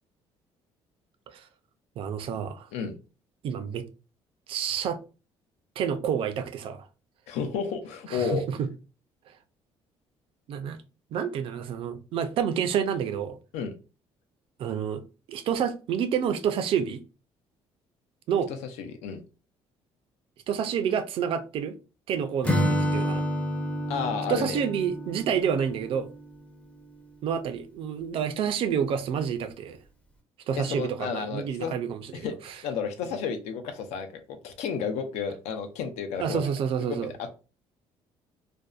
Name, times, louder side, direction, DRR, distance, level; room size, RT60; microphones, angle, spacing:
voice 1, 2.0-2.7 3.4-3.8 4.5-5.0 5.8-6.9 8.1-8.7 10.5-10.8 11.1-13.4 14.6-15.0 15.3-17.0 18.3-18.5 20.5-21.8 22.1-23.2 24.3-26.1 27.2-29.8 30.5-32.6 36.2-37.1, right 8 dB, 55° right, 0.4 m, -29 dB
voice 2, 7.3-8.4 13.5-13.7 18.5-19.2 23.9-24.6 30.5-31.7 32.1-36.5 36.8-37.3, left 6 dB, 85° left, 0.5 m, -32 dB
Acoustic guitar / Strum, 22.4-26.3, equal, 10° left, 0.4 m, -29 dB
2.6 x 2.1 x 2.3 m
cardioid pair, 145°, 11 cm